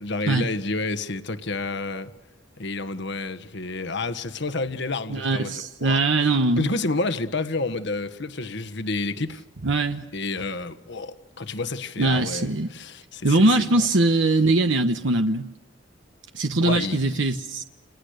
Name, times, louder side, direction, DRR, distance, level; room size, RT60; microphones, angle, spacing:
voice 1, 0.0-2.1 2.6-5.5 5.8-6.0 6.6-9.4 10.1-13.5 16.6-17.3, left 3 dB, 65° left, 1.5 m, -29 dB
voice 2, 5.1-6.7 9.6-10.0 12.0-12.7 13.2-15.5 16.3-17.6, right 2 dB, 70° right, 1.2 m, -21 dB
29.5 x 27.5 x 6.6 m
head